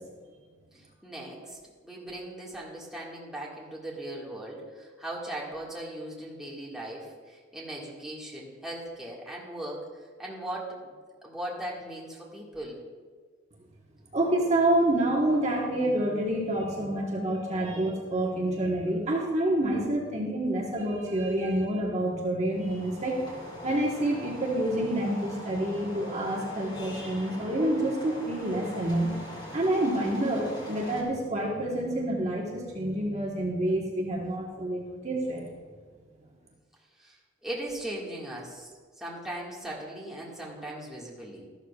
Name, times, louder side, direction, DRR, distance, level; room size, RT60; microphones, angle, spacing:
voice 1, 0.7-10.9 11.2-12.8 37.0-38.7 39.0-41.5, right 1 dB, 5° right, -5 dB, 1.8 m, -39 dB
voice 2, 14.1-23.2 23.6-29.1 29.5-35.4, right 1 dB, 35° right, -2 dB, 1.4 m, -28 dB
sound 1, 22.5-31.0, left 1 dB, 25° left, 2.9 m, -42 dB
13.5 x 12.0 x 2.4 m, 1.5 s
head